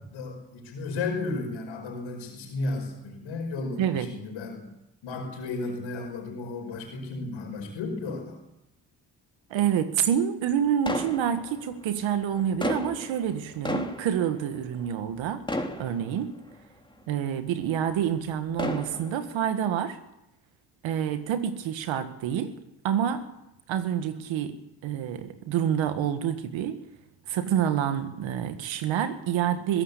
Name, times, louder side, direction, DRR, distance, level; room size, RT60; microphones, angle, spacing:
voice 1, 0.0-4.7 5.0-8.4, left 3 dB, 90° left, 4 dB, 5.3 m, -34 dB
voice 2, 9.5-15.4 15.8-16.3 17.1-20.0 20.8-22.5 22.8-23.2 23.7-24.6 24.8-26.8 27.3-29.8, right 9 dB, 90° right, 10 dB, 1.8 m, -27 dB
sound 1, 10.9-11.9 12.4-15.2 15.5-16.5 17.2-17.3 18.3-19.4, left 1 dB, 10° left, 3.4 m, -33 dB
21.5 x 17.0 x 8.4 m, 0.87 s
supercardioid pair, 45°, 45 cm